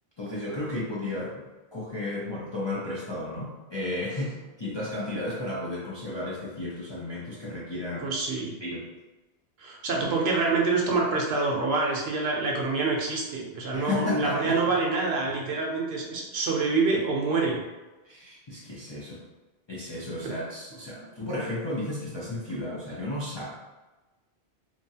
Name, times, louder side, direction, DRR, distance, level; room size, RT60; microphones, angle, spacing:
voice 1, 0.2-1.5 1.7-8.1 8.6-8.9 13.7-14.7 18.0-19.3 19.7-23.5, left 2 dB, 40° left, -8 dB, 0.4 m, -33 dB
voice 2, 8.0-8.5 9.6-17.6 20.2-20.3 21.0-21.1, right 3 dB, 70° right, -1 dB, 0.9 m, -26 dB
3.0 x 2.4 x 2.7 m, 1.2 s
omnidirectional pair, 1.1 m